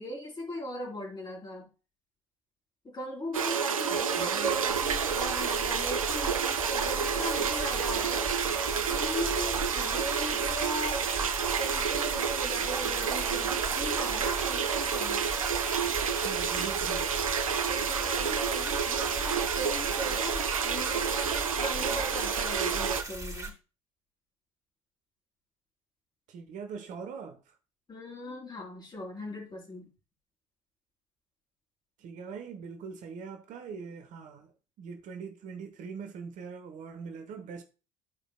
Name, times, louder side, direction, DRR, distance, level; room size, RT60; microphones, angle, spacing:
voice 1, 0.0-1.7 2.8-8.3 8.9-11.1 11.6-15.2 17.7-23.6 27.9-29.9, equal, 25° left, 3.3 m, -38 dB
sound 1, 3.3-23.0, right 7 dB, 80° right, 0.5 m, -29 dB
voice 2, 3.9-4.5 16.1-17.3 26.3-27.5 32.0-37.6, right 5 dB, 45° right, 1.0 m, -42 dB
sound 2, 4.7-23.5, right 1 dB, 20° right, 3.4 m, -39 dB
13.5 x 5.0 x 2.2 m
figure-of-eight pair, 60°, 17 cm